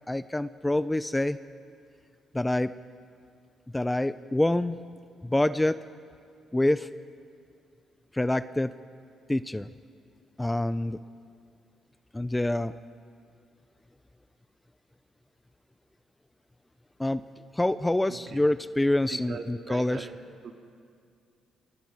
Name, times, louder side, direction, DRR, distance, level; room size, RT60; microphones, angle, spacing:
voice 1, 0.1-1.4 2.3-2.7 3.7-4.8 5.2-5.8 6.5-6.9 8.1-8.7 9.3-9.7 10.4-11.0 12.1-12.7 17.0-17.2 17.6-20.1, left 1 dB, 10° left, 14 dB, 0.6 m, -26 dB
voice 2, 19.1-20.2 20.4-20.5, right 5 dB, 60° right, 3 dB, 2.4 m, -39 dB
28.0 x 24.0 x 4.9 m, 2.3 s
cardioid pair, 90°, 0 cm